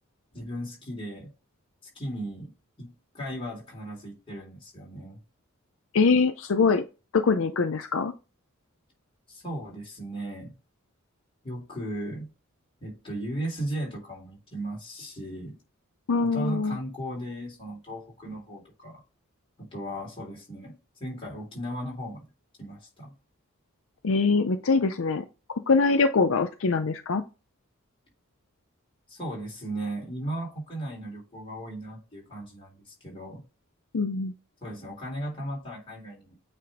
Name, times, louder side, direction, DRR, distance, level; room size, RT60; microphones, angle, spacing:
voice 1, 0.3-1.3 2.0-5.2 9.3-10.5 11.4-12.3 12.8-15.6 16.2-19.0 19.6-22.2 22.6-23.1 29.1-33.4 34.6-36.3, right 1 dB, 25° left, 3.5 m, -36 dB
voice 2, 5.9-6.8 7.1-8.1 16.1-16.8 24.0-25.3 25.7-27.2 33.9-34.3, left 4 dB, 65° left, 0.5 m, -23 dB
8.5 x 3.5 x 3.7 m
head